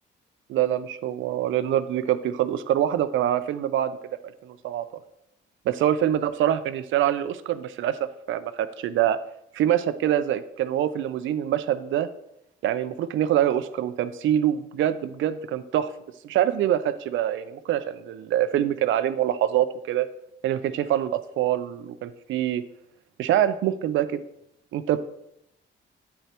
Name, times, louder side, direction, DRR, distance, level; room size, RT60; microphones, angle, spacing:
voice 1, 0.5-4.0 4.4-4.8 5.7-9.2 9.5-12.1 12.6-15.9 16.2-20.1 20.4-22.6 23.2-24.2 24.7-25.0, right 11 dB, 75° right, 13 dB, 0.5 m, -25 dB
8.9 x 8.1 x 2.9 m, 0.79 s
cardioid pair, 90°, 20 cm